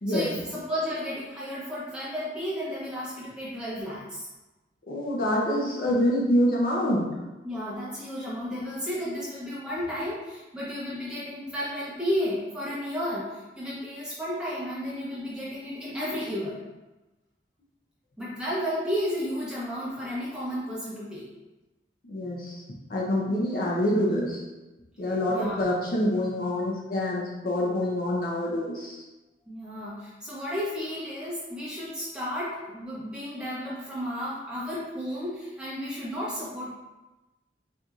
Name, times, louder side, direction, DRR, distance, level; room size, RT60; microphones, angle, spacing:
voice 1, 0.1-4.3 7.4-16.6 18.2-21.3 25.0-25.7 29.5-36.7, equal, 5° right, -9 dB, 0.9 m, -33 dB
voice 2, 4.9-7.0 22.1-22.6 22.9-24.4 25.0-29.0, left 1 dB, 50° left, -3 dB, 0.6 m, -26 dB
4.3 x 2.5 x 2.4 m, 1.1 s
head